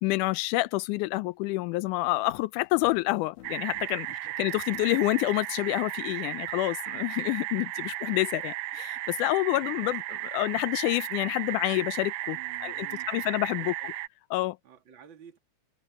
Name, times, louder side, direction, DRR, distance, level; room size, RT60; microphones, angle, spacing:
voice 1, 0.0-4.1 4.4-10.0 10.3-12.7 13.1-13.9 14.3-14.6, left 19 dB, 85° left, 2.1 m, -28 dB
sound 1, 2.1-4.9, left 11 dB, 65° left, 2.3 m, -52 dB
sound 2, 3.4-14.1, right 16 dB, 75° right, 2.0 m, -35 dB
voice 2, 3.8-4.4 7.7-7.9 9.5-9.9 12.2-13.9 14.6-15.4, right 8 dB, 40° right, 3.1 m, -52 dB
omnidirectional pair, 3.6 m